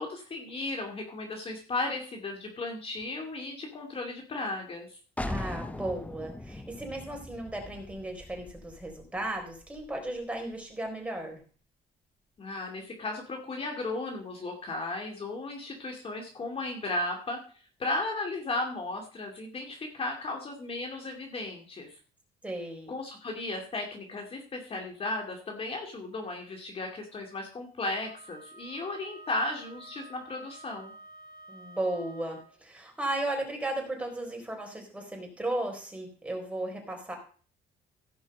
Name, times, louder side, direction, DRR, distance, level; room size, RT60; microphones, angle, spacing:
voice 1, 0.0-5.0 12.4-17.4 17.8-22.0 22.9-30.9, left 2 dB, 35° left, 2 dB, 2.4 m, -35 dB
sound 1, 5.2-10.7, left 1 dB, 10° left, 0.7 m, -41 dB
voice 2, 5.3-11.4 22.4-22.9 31.5-37.2, right 1 dB, 5° right, 1 dB, 4.1 m, -35 dB
Wind instrument woodwind instrument, 27.9-32.6, right 2 dB, 60° left, 1.6 m, -50 dB
16.0 x 5.5 x 5.3 m, 0.41 s
cardioid pair, 110°, 17 cm